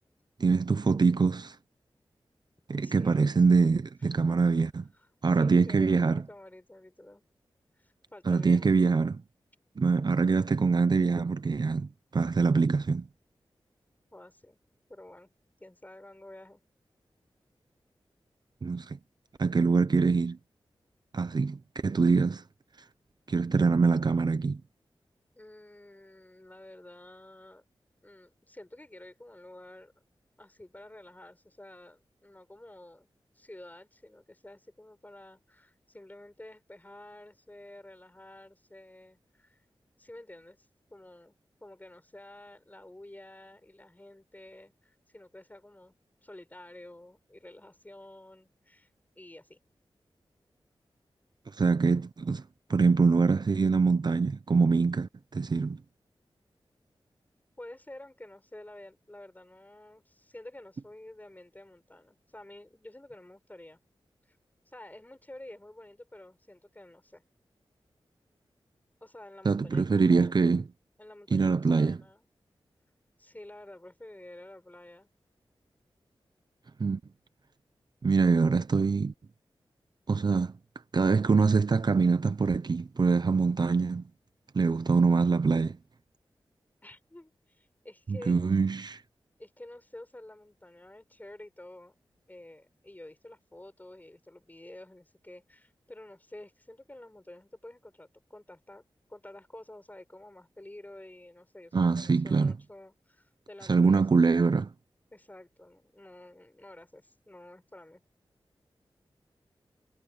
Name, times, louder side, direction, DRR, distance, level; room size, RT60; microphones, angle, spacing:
voice 1, 0.4-1.6 2.7-4.7 5.2-6.2 8.3-9.2 9.8-13.0 18.6-19.0 19.4-20.4 21.1-22.4 23.3-24.6 51.5-52.4 52.7-55.8 69.4-70.6 71.3-72.0 76.8-77.0 78.0-79.1 80.1-80.5 80.9-84.0 84.5-85.8 88.1-89.0 101.7-102.5 103.7-104.7, right 4 dB, 50° right, 0.8 m, -24 dB
voice 2, 2.8-3.3 4.2-4.4 5.0-5.1 5.4-7.2 7.8-8.7 14.1-14.6 14.9-15.3 15.6-16.6 25.4-27.6 28.0-29.9 30.4-33.1 33.3-39.6 40.0-41.3 41.6-45.9 46.2-48.9 49.2-49.6 57.6-63.8 64.3-64.4 64.7-67.2 69.0-70.3 71.0-72.3 73.2-75.1 86.8-88.4 89.4-91.9 92.3-98.8 99.1-104.0 105.1-108.0, left 1 dB, 20° left, 6.1 m, -50 dB
wide cardioid pair, 70°, 9 cm